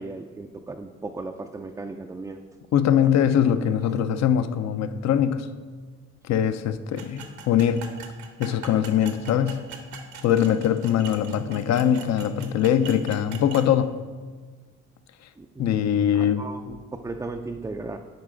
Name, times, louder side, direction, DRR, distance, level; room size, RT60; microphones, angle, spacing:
voice 1, 0.0-2.4 15.4-15.7 16.2-18.0, right 3 dB, 10° right, 3 dB, 0.3 m, -36 dB
voice 2, 2.7-5.5 6.2-7.9 8.4-9.7 10.2-14.0 15.6-16.5, left 9 dB, 60° left, 11 dB, 0.6 m, -22 dB
sound 1, 7.0-13.7, right 6 dB, 75° right, 1.0 m, -42 dB
9.3 x 4.8 x 3.8 m, 1.4 s
cardioid pair, 90°, 30 cm